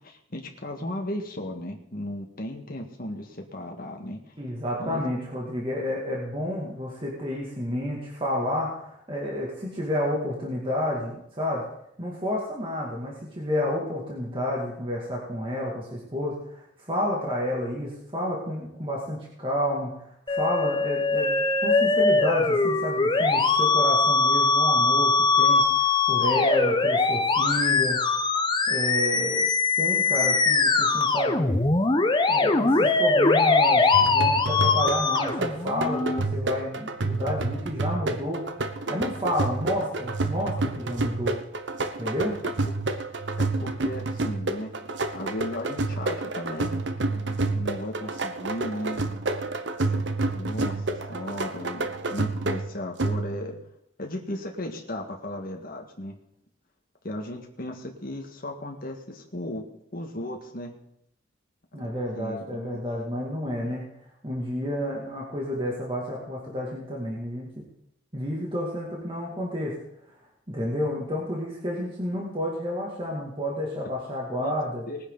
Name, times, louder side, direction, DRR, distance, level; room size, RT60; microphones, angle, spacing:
voice 1, 0.0-4.3 4.8-5.0 42.6-42.7 43.4-44.7 45.1-49.0 49.9-53.6 54.0-56.2 57.0-59.6 59.9-60.7 62.2-62.8 74.3-74.5 74.9-75.0, left 1 dB, 50° left, 2 dB, 1.8 m, -36 dB
voice 2, 4.4-11.6 12.0-28.0 28.7-29.5 29.8-31.6 32.3-38.4 38.9-41.4 42.0-42.4 61.7-63.9 64.2-67.5 68.1-69.8 70.5-74.8, left 1 dB, 25° right, -4 dB, 2.5 m, -30 dB
Musical instrument, 20.3-36.2, left 3 dB, 25° left, 0.9 m, -22 dB
sound 1, 33.9-53.6, right 2 dB, 65° right, 0.9 m, -29 dB
19.5 x 9.8 x 4.0 m, 0.77 s
head